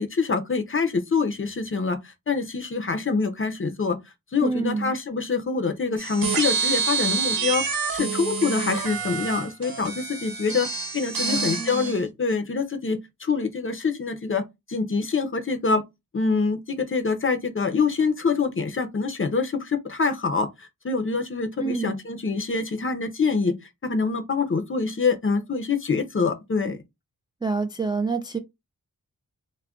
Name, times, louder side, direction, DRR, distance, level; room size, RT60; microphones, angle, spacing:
voice 1, 0.0-4.0 4.3-15.8 16.1-23.6 23.8-26.8, left 4 dB, 35° left, 0.5 m, -25 dB
voice 2, 4.4-5.0 11.3-12.0 21.6-21.9 27.4-28.4, right 4 dB, 15° right, 0.3 m, -27 dB
sound 1, 6.0-12.0, right 5 dB, 75° right, 0.8 m, -27 dB
2.3 x 2.1 x 3.5 m
wide cardioid pair, 80°, 35 cm